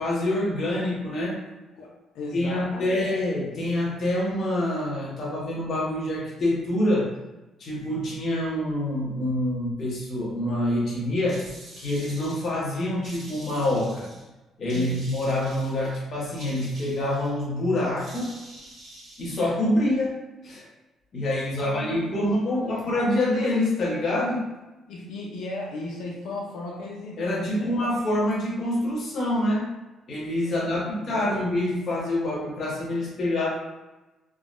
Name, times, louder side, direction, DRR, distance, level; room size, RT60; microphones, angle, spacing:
voice 1, 0.0-1.4 2.3-7.1 7.6-11.5 11.8-14.1 14.6-18.4 19.2-20.2 20.4-20.6 21.1-24.5 27.2-29.7 30.1-33.5, left 1 dB, 45° left, -5 dB, 0.9 m, -26 dB
voice 2, 2.1-3.1 14.7-15.1 21.6-22.9 24.9-27.9 30.4-31.4, left 2 dB, 85° left, -3 dB, 0.5 m, -36 dB
sound 1, 11.3-12.6 13.0-14.3 14.7-15.9 16.4-17.3 18.0-19.3, right 1 dB, 40° right, 1.0 m, -46 dB
3.4 x 2.1 x 2.4 m, 1.1 s
cardioid pair, 165°, 0 cm